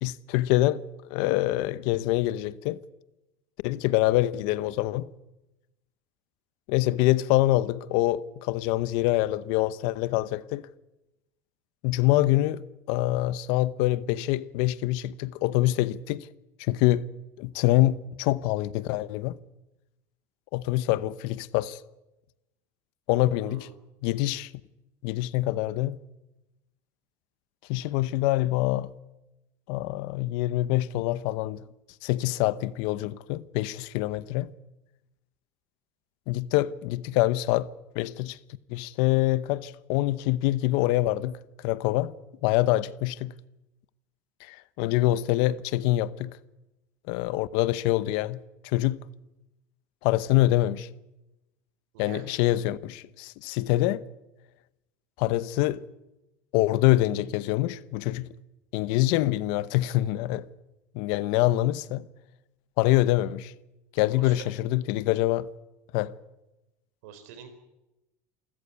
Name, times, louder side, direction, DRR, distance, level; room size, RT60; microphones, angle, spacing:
voice 1, 0.0-0.8 1.1-2.8 3.6-5.1 6.7-10.7 11.8-16.3 16.6-17.1 17.4-19.4 20.5-21.8 23.1-23.7 24.0-24.5 25.0-26.0 27.7-28.9 29.7-31.6 32.0-34.5 36.3-37.7 37.9-38.4 38.7-42.1 42.4-43.3 44.4-46.4 47.1-49.0 50.0-50.9 52.0-54.0 55.2-55.8 56.5-58.3 58.7-60.5 60.9-62.1 62.8-63.5 63.9-65.5 65.9-66.2, left 16 dB, 70° left, 0.9 m, -25 dB
voice 2, 23.4-23.7 51.9-52.3 64.1-64.5 67.0-67.5, right 9 dB, 85° right, 4.4 m, -44 dB
28.0 x 14.0 x 8.3 m
supercardioid pair, 130°, 8 cm